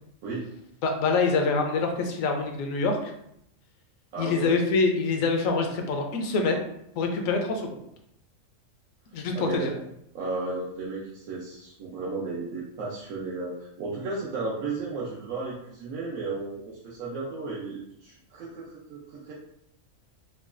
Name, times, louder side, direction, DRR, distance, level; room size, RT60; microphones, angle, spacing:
voice 1, 0.8-3.1 4.2-6.6 7.0-7.7 9.1-9.7, left 4 dB, 75° left, 3 dB, 1.0 m, -25 dB
voice 2, 4.1-4.6 9.3-9.7 10.1-19.3, right 3 dB, 85° right, -5 dB, 1.1 m, -34 dB
4.9 x 2.3 x 2.5 m, 0.75 s
omnidirectional pair, 1.4 m